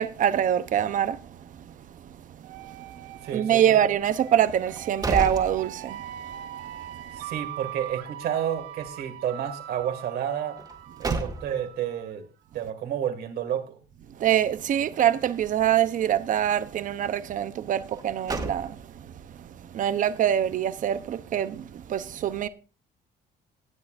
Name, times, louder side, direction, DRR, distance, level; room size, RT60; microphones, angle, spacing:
voice 1, 0.0-1.7 2.5-3.1 3.3-7.0 14.2-22.5, right 10 dB, 50° right, 0.8 m, -25 dB
sound 1, 2.4-12.1, right 12 dB, 85° right, 0.9 m, -41 dB
voice 2, 3.2-3.8 7.1-10.6 11.0-12.3 12.5-13.8, right 9 dB, 70° right, 2.3 m, -30 dB
sound 2, 4.7-6.3 6.7-6.8 10.6-11.8 17.9-19.1, right 2 dB, 25° right, 2.0 m, -33 dB
18.5 x 8.5 x 2.6 m
cardioid pair, 110°, 17 cm